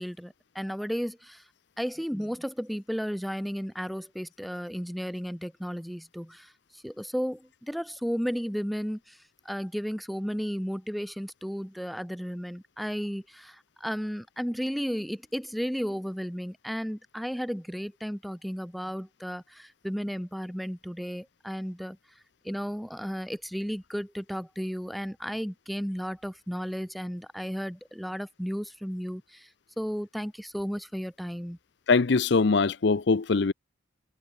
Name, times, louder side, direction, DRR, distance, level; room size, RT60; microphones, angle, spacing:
voice 1, 0.0-1.4 1.8-22.0 22.4-29.5 29.8-31.6, equal, ahead, 1.7 m, -34 dB
voice 2, 31.9-33.5, left 4 dB, 55° left, 0.6 m, -22 dB
head